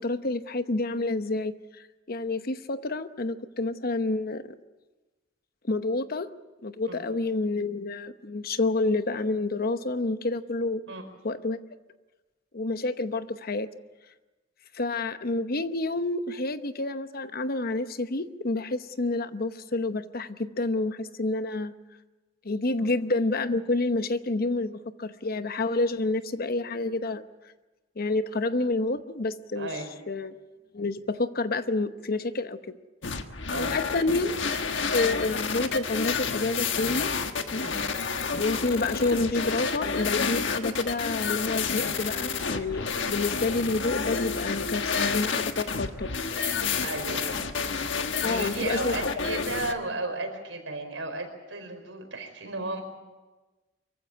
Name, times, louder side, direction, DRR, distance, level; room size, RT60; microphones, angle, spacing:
voice 1, 0.0-4.5 5.7-6.3 6.6-10.8 11.2-11.6 12.5-13.7 14.7-21.7 22.4-27.2 28.0-29.7 30.1-30.3 30.7-32.8 33.6-34.3 34.9-37.1 37.5-37.8 38.3-46.4 47.7-47.9 48.2-49.1, left 2 dB, 50° left, 11 dB, 0.9 m, -29 dB
voice 2, 29.5-29.9 33.5-33.8 37.6-37.8 46.8-47.9 48.2-52.8, right 2 dB, 80° right, 5 dB, 4.7 m, -35 dB
sound 1, 33.0-49.7, left 5 dB, 70° left, 1.4 m, -30 dB
24.0 x 15.5 x 9.6 m, 1.2 s
head